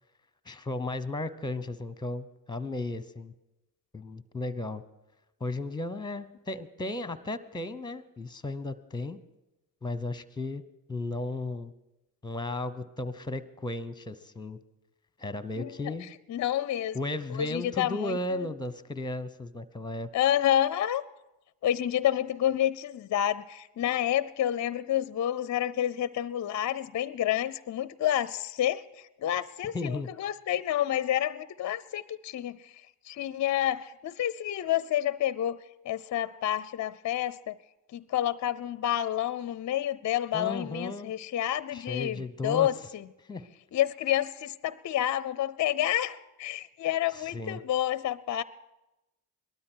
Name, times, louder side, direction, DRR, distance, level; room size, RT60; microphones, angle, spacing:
voice 1, 0.5-3.3 3.9-4.8 5.4-9.2 9.8-10.6 10.9-11.7 12.2-14.6 15.2-16.1 16.9-20.1 29.7-30.1 40.3-41.1 41.7-42.7 43.3-43.5 47.1-47.6, left 2 dB, 10° left, 15 dB, 0.9 m, -35 dB
voice 2, 15.6-17.0 17.4-18.5 20.1-21.0 21.6-32.7 33.0-35.6 35.8-37.6 37.9-43.0 43.7-48.4, left 11 dB, 35° left, 19 dB, 0.5 m, -29 dB
19.0 x 12.5 x 4.6 m, 0.97 s
supercardioid pair, 55°, 49 cm